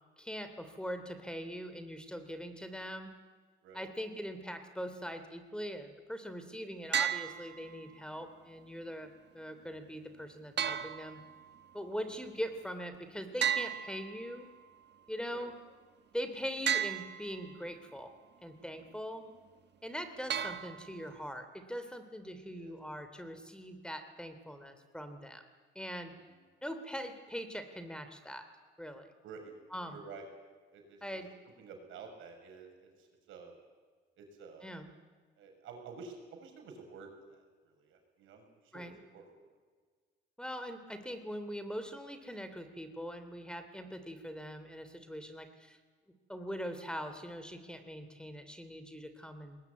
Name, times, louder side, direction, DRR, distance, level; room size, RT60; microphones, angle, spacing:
voice 1, 0.2-3.1 3.7-11.2 11.7-14.5 15.1-15.6 16.1-18.1 18.4-19.3 19.8-25.4 25.7-26.1 26.6-28.5 28.8-29.1 29.7-30.0 31.0-31.3 34.6-34.9 38.7-38.9 40.4-45.8 46.3-49.6, equal, 5° left, 9 dB, 2.9 m, -42 dB
sound 1, 6.9-7.9 10.6-11.7 13.4-14.6 16.7-17.6 20.3-21.2, right 9 dB, 60° right, 1.2 m, -35 dB
voice 2, 26.1-26.4 29.2-29.5 29.9-30.3 30.7-31.2 31.6-33.6 34.2-34.7 35.4-39.2, right 5 dB, 85° right, 3 dB, 6.2 m, -51 dB
20.5 x 20.0 x 9.6 m, 1.5 s
cardioid pair, 90°, 20 cm